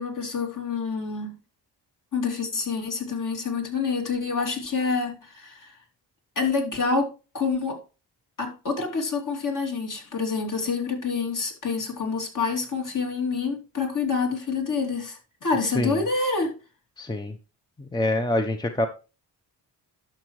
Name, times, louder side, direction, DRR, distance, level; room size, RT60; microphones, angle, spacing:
voice 1, 0.0-1.3 2.1-5.8 6.4-7.8 8.4-16.6, left 4 dB, 45° left, 3.0 m, -27 dB
voice 2, 15.6-16.0 17.0-17.4 17.8-18.9, left 1 dB, 10° left, 0.9 m, -26 dB
11.5 x 6.1 x 3.2 m
cardioid pair, 75°, 42 cm